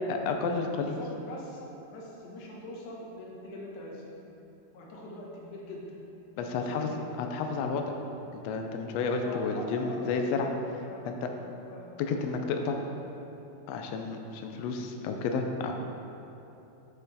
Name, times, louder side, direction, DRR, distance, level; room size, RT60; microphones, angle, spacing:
voice 1, 0.1-1.0 6.4-6.9 7.2-7.8 8.3-10.5 11.1-11.2 12.0-12.8 13.7-15.7, left 4 dB, 90° left, 4 dB, 1.4 m, -31 dB
voice 2, 0.8-1.6 1.9-4.0 4.7-6.0 6.4-7.2 9.2-10.6 10.9-12.2, left 1 dB, 70° left, -2 dB, 2.4 m, -43 dB
7.5 x 6.5 x 4.0 m, 2.9 s
omnidirectional pair, 3.7 m